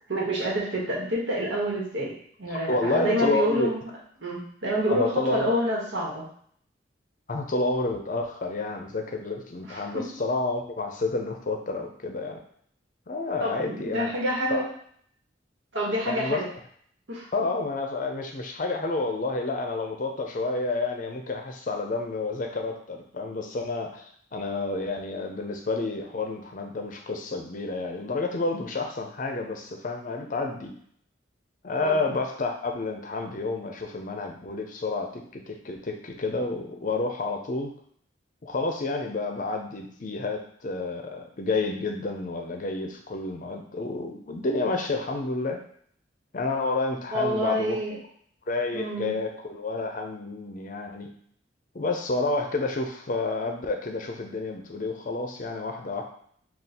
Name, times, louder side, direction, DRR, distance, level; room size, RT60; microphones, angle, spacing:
voice 1, 0.1-2.1 2.4-3.9 4.2-6.3 9.6-10.1 13.4-14.7 15.7-16.5 17.1-17.3 31.8-32.0 47.1-48.0 48.7-49.1, equal, 85° right, -3 dB, 1.2 m, -28 dB
voice 2, 2.5-3.7 4.9-5.5 7.3-12.4 13.1-14.1 14.5-14.6 16.1-16.4 17.3-30.7 31.6-37.7 38.4-45.6 46.3-47.8 48.5-51.1 51.7-56.0, left 3 dB, 45° left, 4 dB, 0.5 m, -30 dB
3.6 x 2.4 x 4.2 m, 0.63 s
head